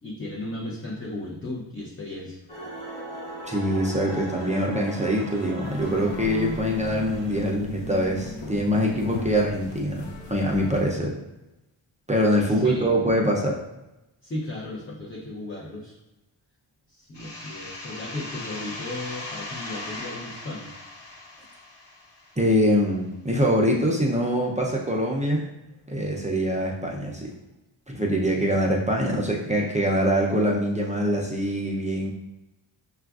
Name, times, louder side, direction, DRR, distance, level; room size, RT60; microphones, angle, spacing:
voice 1, 0.0-2.4 12.4-12.9 14.2-16.0 16.9-20.7, left 2 dB, 25° left, -3 dB, 0.6 m, -35 dB
sound 1, 2.5-7.5, right 1 dB, 10° left, 1.1 m, -39 dB
voice 2, 3.4-11.1 12.1-13.6 22.4-25.4 25.9-27.3 27.9-32.1, equal, 15° right, -2 dB, 0.4 m, -24 dB
sound 2, 5.6-10.8, left 1 dB, 90° left, 0.9 m, -36 dB
sound 3, 17.1-22.6, left 2 dB, 60° left, 1.1 m, -39 dB
6.7 x 2.4 x 2.3 m, 0.95 s
wide cardioid pair, 150°, 46 cm